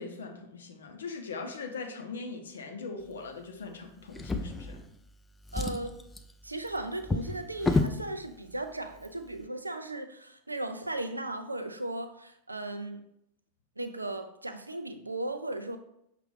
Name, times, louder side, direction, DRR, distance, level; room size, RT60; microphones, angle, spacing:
voice 1, 0.0-4.8, left 4 dB, 65° left, 4 dB, 0.6 m, -40 dB
Drawer open or close, 4.1-5.1 5.4-8.0 8.9-9.1 9.4-9.5, left 3 dB, 10° left, 0.3 m, -31 dB
voice 2, 5.5-6.0 6.4-13.0 13.8-15.8, right 2 dB, 85° right, 8 dB, 0.4 m, -36 dB
5.5 x 2.5 x 3.2 m, 0.75 s
figure-of-eight pair, 90°, 0 cm